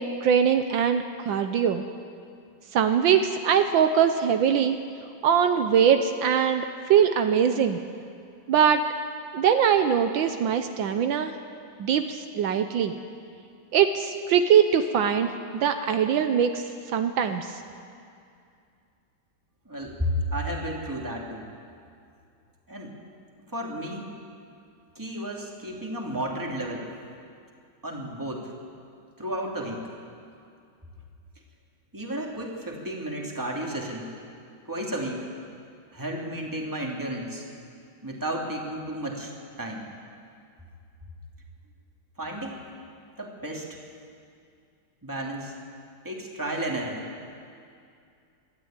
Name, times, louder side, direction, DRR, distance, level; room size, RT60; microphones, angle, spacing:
voice 1, 0.0-1.8 2.7-4.8 5.2-7.8 8.5-8.8 9.3-11.3 11.8-13.0 13.7-17.6, right 8 dB, 75° right, 8 dB, 1.5 m, -22 dB
voice 2, 19.7-21.5 22.7-22.9 23.5-24.1 25.0-26.9 27.8-28.5 29.2-29.9 31.9-34.1 34.7-35.3 35.9-37.4 38.0-39.3 39.6-39.8 42.2-42.7 43.2-43.8 45.0-45.5 46.0-47.0, right 1 dB, 10° right, -1 dB, 2.4 m, -32 dB
22.5 x 13.0 x 8.8 m, 2.4 s
omnidirectional pair, 2.2 m